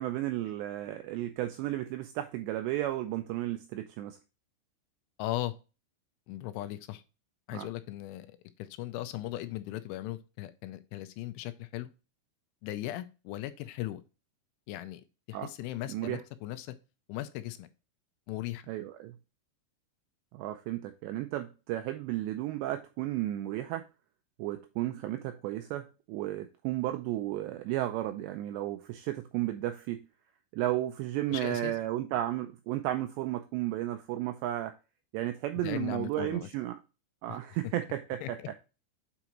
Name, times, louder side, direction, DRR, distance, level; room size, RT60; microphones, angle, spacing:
voice 1, 0.0-4.2 7.5-7.7 15.3-15.5 15.9-16.2 18.7-19.2 20.3-23.9 24.4-30.1 30.5-34.8 35.1-36.8 37.2-38.4, right 14 dB, 85° right, 2.5 m, -33 dB
voice 2, 5.2-5.5 6.3-7.0 7.5-8.3 8.6-11.9 12.6-14.0 14.7-15.0 15.3-16.8 17.1-17.7 18.3-18.6 31.3-31.7 35.6-36.5 37.3-37.4 38.2-38.5, left 15 dB, 85° left, 3.1 m, -38 dB
8.1 x 4.9 x 3.0 m
omnidirectional pair, 5.5 m